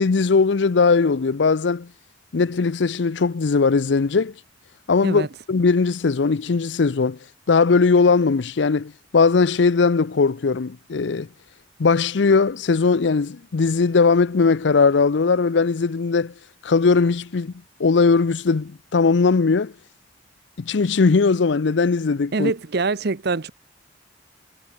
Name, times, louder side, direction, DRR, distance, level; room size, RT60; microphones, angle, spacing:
voice 1, 0.0-1.9 2.3-4.3 4.9-7.2 7.5-11.3 11.8-16.3 16.6-17.5 17.8-19.7 20.6-22.5, left 4 dB, 70° left, 0.6 m, -19 dB
voice 2, 22.3-23.5, right 3 dB, 60° right, 0.8 m, -24 dB
head